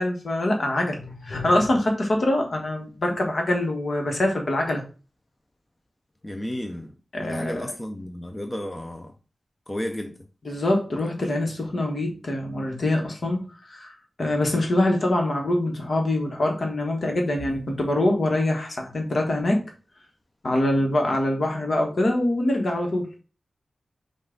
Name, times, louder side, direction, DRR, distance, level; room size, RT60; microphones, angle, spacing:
voice 1, 0.0-4.8 7.1-7.6 10.5-13.9 14.2-19.6 20.4-23.1, left 1 dB, 60° left, 1.2 m, -24 dB
voice 2, 6.2-9.1 9.7-10.3, left 1 dB, 20° left, 0.5 m, -33 dB
5.4 x 2.4 x 3.8 m
wide cardioid pair, 85°, 0 cm